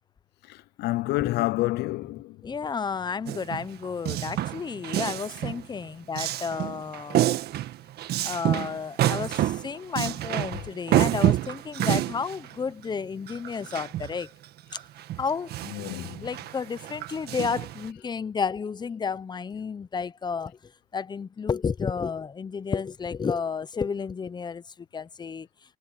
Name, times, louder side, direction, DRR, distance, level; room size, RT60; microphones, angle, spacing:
voice 1, 0.5-2.3 15.7-16.2, left 18 dB, 75° left, 0.4 m, -28 dB
voice 2, 2.4-7.4 8.2-14.3 15.2-15.5 16.2-20.6 20.9-24.6 24.9-25.5, left 5 dB, 25° left, 0.8 m, -31 dB
Male speech man speaking, 3.3-5.7 6.1-14.2 14.7-17.9, right 13 dB, 70° right, 1.7 m, -28 dB
cardioid pair, 110°, 17 cm